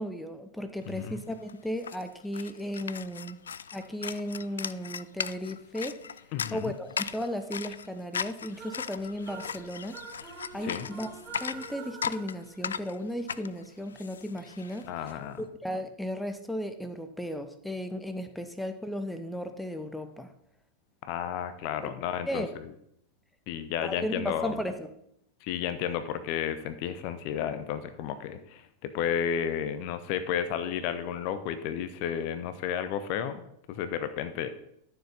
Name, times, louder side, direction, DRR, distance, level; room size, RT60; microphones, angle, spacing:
voice 1, 0.0-3.4 3.7-6.0 6.5-11.1 11.4-14.9 15.4-20.3 21.8-21.9 22.3-22.5 23.8-24.9, equal, 5° left, 8 dB, 0.8 m, -35 dB
sound 1, 1.0-1.1 1.3-15.1, left 7 dB, 70° left, 0.3 m, -38 dB
voice 2, 6.3-6.7 10.6-10.9 14.8-15.4 21.0-22.7 23.5-24.6 25.4-34.5, left 9 dB, 45° left, 11 dB, 0.8 m, -32 dB
sound 2, 8.5-13.3, right 4 dB, 35° right, 4.1 m, -46 dB
13.0 x 6.9 x 4.1 m, 0.73 s
figure-of-eight pair, 90°, 0 cm